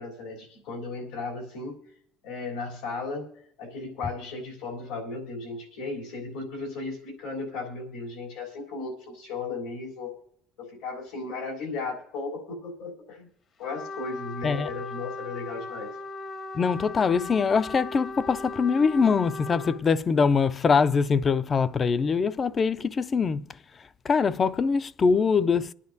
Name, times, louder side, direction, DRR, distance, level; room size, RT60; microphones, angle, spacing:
voice 1, 0.0-1.8 2.2-3.3 3.6-10.2 10.6-13.3 13.6-15.9, left 3 dB, 90° left, 3.5 m, -35 dB
Trumpet, 13.6-19.8, left 3 dB, 45° left, 0.9 m, -38 dB
voice 2, 16.5-23.5 24.0-25.7, left 5 dB, 30° left, 0.4 m, -23 dB
25.5 x 9.8 x 2.7 m
cardioid pair, 120°, 0 cm